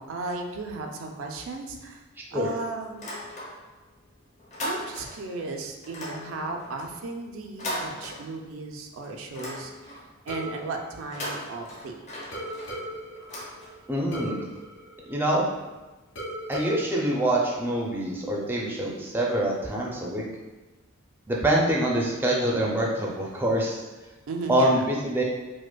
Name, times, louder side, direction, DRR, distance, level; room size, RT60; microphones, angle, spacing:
voice 1, 0.0-2.0 2.3-3.1 4.6-12.1 24.3-24.8, right 3 dB, 80° right, 3 dB, 0.4 m, -35 dB
sound 1, 2.9-3.9 4.2-5.3 5.8-8.7 9.0-10.2 11.0-14.1, left 1 dB, 35° left, 0.7 m, -38 dB
sound 2, 10.3-11.9 12.3-15.7 16.2-18.1, right 1 dB, 70° left, 0.7 m, -39 dB
voice 2, 13.9-14.4 15.1-15.5 16.5-20.2 21.3-23.8 24.5-25.2, right 1 dB, 10° right, -3 dB, 0.4 m, -25 dB
4.9 x 2.1 x 2.2 m, 1.1 s
head